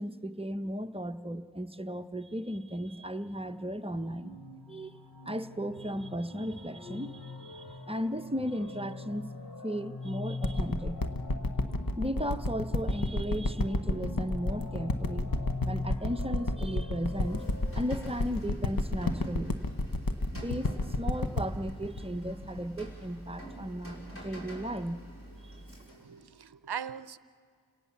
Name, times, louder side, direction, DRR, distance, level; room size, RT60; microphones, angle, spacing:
voice 1, 0.0-4.3 4.7-4.9 5.2-9.3 9.6-11.1 12.0-15.3 15.6-17.4 17.7-19.6 20.3-25.0, equal, 15° right, 8 dB, 0.8 m, -35 dB
sound 1, 3.3-18.1, left 3 dB, 80° left, 1.4 m, -43 dB
sound 2, 10.4-23.2 23.8-23.9, left 2 dB, 60° left, 1.1 m, -31 dB
Rain, 16.9-26.2, right 1 dB, 35° left, 5.3 m, -47 dB
voice 2, 25.9-27.2, right 7 dB, 85° right, 16 dB, 0.6 m, -40 dB
29.0 x 18.0 x 7.2 m, 2.1 s
wide cardioid pair, 45°, 38 cm